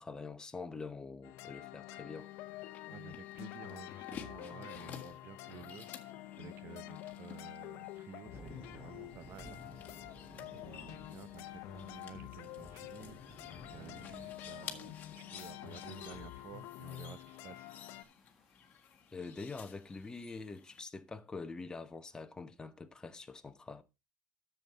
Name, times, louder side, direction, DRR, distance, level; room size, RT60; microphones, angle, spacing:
voice 1, 0.0-2.3 19.1-23.8, left 4 dB, 15° left, 1.0 m, -45 dB
sound 1, 1.2-18.0, left 15 dB, 70° left, 0.8 m, -48 dB
sound 2, 2.2-20.8, left 8 dB, 35° left, 1.7 m, -54 dB
voice 2, 2.9-9.8 10.3-13.4 13.7-17.7, right 10 dB, 50° right, 0.6 m, -53 dB
sound 3, 8.3-20.1, equal, 5° right, 1.6 m, -58 dB
10.5 x 7.3 x 4.0 m
supercardioid pair, 120°, 5 cm